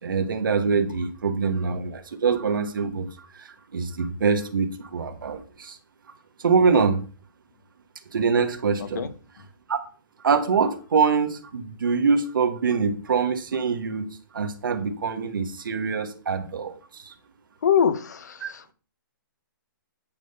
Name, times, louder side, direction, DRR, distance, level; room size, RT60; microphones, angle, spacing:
voice 1, 0.0-3.1 3.4-5.8 6.4-7.0 8.1-9.1 9.7-9.8 10.2-14.1 14.3-17.1 18.4-18.5, right 5 dB, 70° right, 1.6 m, -24 dB
voice 2, 8.8-9.1 17.6-18.7, left 8 dB, 55° left, 0.9 m, -24 dB
8.9 x 3.5 x 5.6 m
hypercardioid pair, 175°, 11 cm